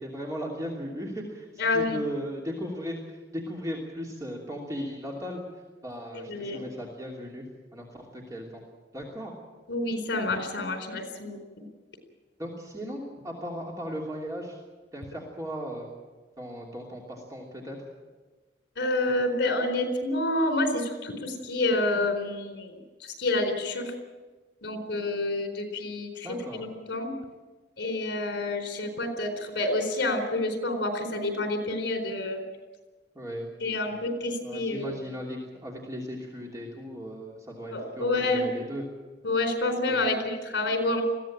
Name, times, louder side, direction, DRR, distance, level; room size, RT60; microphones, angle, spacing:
voice 1, 0.0-5.4 5.8-7.4 7.7-8.6 8.9-9.3 12.4-14.6 14.9-15.9 16.4-17.8 26.2-26.6 33.1-33.5 33.9-34.0 34.4-38.8 39.9-40.0, equal, 20° right, -2 dB, 3.0 m, -37 dB
voice 2, 1.6-2.0 6.3-6.6 9.7-11.7 18.8-23.9 24.6-27.1 27.8-32.4 33.6-35.0 37.7-38.4 39.2-41.0, left 2 dB, 70° left, 6 dB, 4.2 m, -28 dB
21.0 x 16.0 x 8.8 m, 1.3 s
head